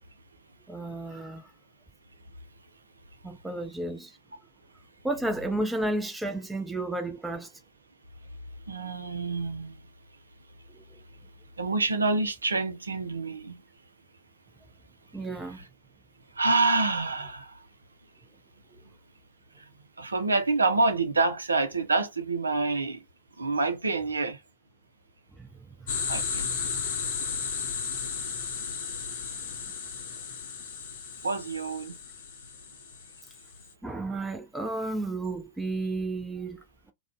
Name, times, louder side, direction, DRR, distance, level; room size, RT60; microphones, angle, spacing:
voice 1, 0.7-1.5 3.2-4.2 5.0-7.5 10.7-11.0 15.1-15.6 25.4-25.5 25.8-25.9 33.8-36.9, right 2 dB, 10° right, 0.5 m, -32 dB
voice 2, 8.7-9.8 11.6-13.6 16.4-17.6 20.0-23.0 23.4-24.4 26.1-26.5 31.2-31.9, right 3 dB, 80° right, 0.5 m, -27 dB
sound 1, 25.9-33.6, left 6 dB, 60° left, 0.6 m, -34 dB
2.4 x 2.1 x 3.5 m
figure-of-eight pair, 90°, 0 cm